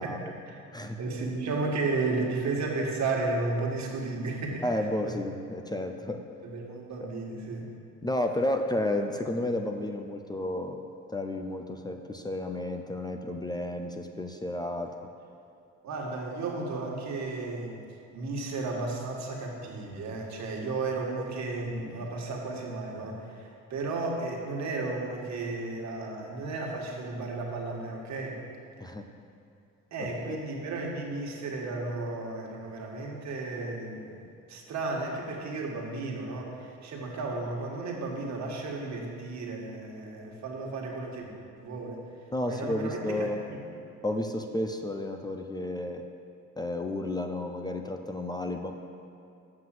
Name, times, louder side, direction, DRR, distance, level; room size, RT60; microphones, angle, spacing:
voice 1, 0.0-0.6 1.0-4.6 5.0-5.2 6.4-7.7 15.8-17.8 18.1-28.4 29.9-34.2 34.5-41.3 41.6-42.0 42.4-43.6, right 3 dB, 65° right, -1 dB, 1.7 m, -33 dB
voice 2, 4.6-6.2 8.0-10.8 11.1-14.9 28.8-29.0 30.0-30.4 42.3-43.4 44.0-46.0 46.6-48.7, left 1 dB, 15° left, 4 dB, 0.6 m, -32 dB
7.6 x 6.0 x 7.6 m, 2.5 s
cardioid pair, 90°, 30 cm